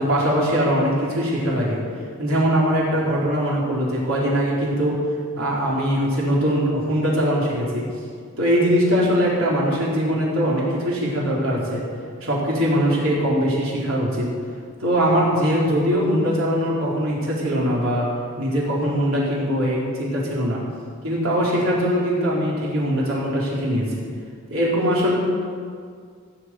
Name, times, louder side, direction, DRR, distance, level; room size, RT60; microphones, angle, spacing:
voice 1, 0.0-1.8 2.2-5.0 5.4-7.9 8.4-11.8 12.2-14.3 14.8-18.1 18.4-20.6 21.0-23.9 24.5-25.2, equal, 80° right, -5 dB, 4.1 m, -21 dB
16.0 x 7.3 x 7.7 m, 2.1 s
head